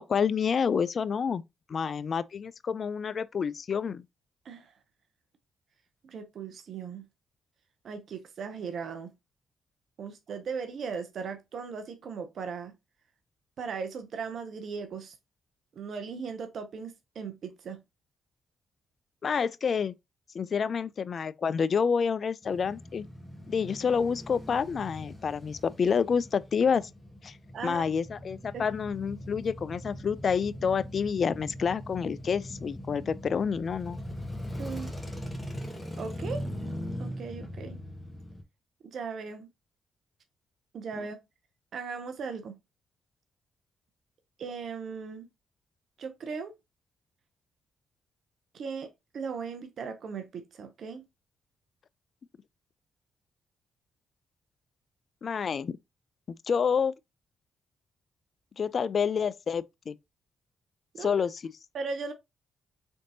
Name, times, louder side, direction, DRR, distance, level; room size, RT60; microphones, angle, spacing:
voice 1, 0.0-1.4 1.7-4.0 19.2-19.9 20.3-23.1 23.5-26.9 27.2-27.4 27.6-34.0 55.2-55.7 56.5-56.9 58.6-59.9 61.0-61.5, left 6 dB, 55° left, 0.3 m, -28 dB
voice 2, 6.0-7.0 7.8-9.1 10.0-12.7 13.6-15.2 15.7-17.8 27.5-27.8 28.5-28.6 34.6-34.9 36.0-36.4 37.0-37.8 38.9-39.5 40.7-41.2 41.7-42.6 44.4-45.3 46.0-46.5 48.5-51.0 60.9-61.1 61.7-62.1, right 5 dB, 65° right, 0.6 m, -38 dB
Male speech man speaking / Motorcycle / Idling, 22.4-38.4, equal, 10° left, 1.7 m, -40 dB
3.7 x 3.5 x 2.7 m
supercardioid pair, 50°, 0 cm